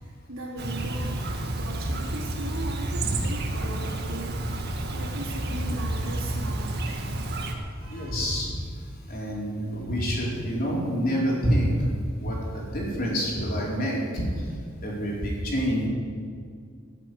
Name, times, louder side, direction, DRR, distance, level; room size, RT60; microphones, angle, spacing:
voice 1, 0.0-7.0 7.8-8.4, right 2 dB, 80° right, -2 dB, 3.6 m, -39 dB
Chirp tweet, 0.6-7.5, right 1 dB, 50° right, 1.9 m, -30 dB
voice 2, 7.8-8.6 9.1-14.5 14.8-15.9, equal, 45° left, -3 dB, 4.4 m, -27 dB
17.0 x 8.1 x 9.4 m, 2.2 s
head